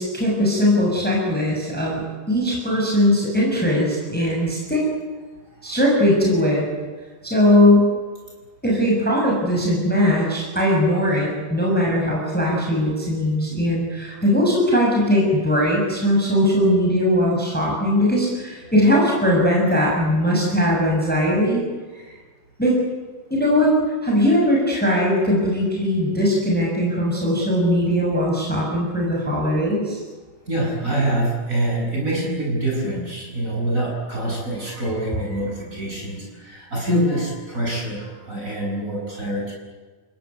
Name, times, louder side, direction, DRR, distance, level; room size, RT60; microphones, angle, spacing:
voice 1, 0.0-4.8 5.6-6.7 7.2-7.9 8.6-21.6 21.9-22.0 22.6-22.8 23.3-23.7 24.0-30.0, left 1 dB, 5° left, -3 dB, 6.4 m, -19 dB
voice 2, 30.5-39.5, right 1 dB, 25° right, -2 dB, 8.4 m, -25 dB
30.0 x 18.0 x 9.8 m, 1.4 s
omnidirectional pair, 3.6 m